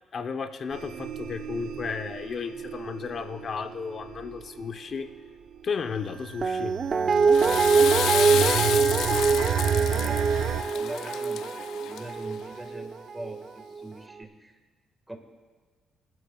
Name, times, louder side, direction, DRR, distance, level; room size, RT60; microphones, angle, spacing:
voice 1, 0.1-5.1 5.6-6.8, left 5 dB, 50° left, 8 dB, 0.7 m, -34 dB
sound 1, 0.7-10.6, right 9 dB, 85° right, 0.7 m, -33 dB
Guitar, 6.4-13.4 13.8-13.9, right 5 dB, 40° right, 0.5 m, -24 dB
Water / Toilet flush, 7.1-12.4, left 10 dB, 85° left, 0.4 m, -31 dB
voice 2, 8.1-8.7 9.8-10.4 10.7-14.6 15.1-15.2, right 1 dB, 10° right, 4 dB, 1.6 m, -41 dB
20.5 x 12.0 x 2.3 m, 1.4 s
cardioid pair, 90°, 0 cm